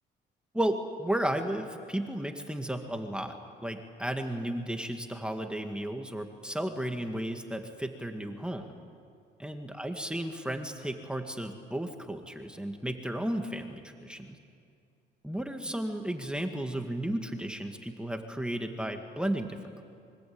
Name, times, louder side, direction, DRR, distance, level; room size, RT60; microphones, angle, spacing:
voice 1, 0.5-8.6 9.4-14.4 15.2-19.7, right 1 dB, 5° right, 4 dB, 2.1 m, -34 dB
25.0 x 24.0 x 8.8 m, 2.4 s
cardioid pair, 90°, 20 cm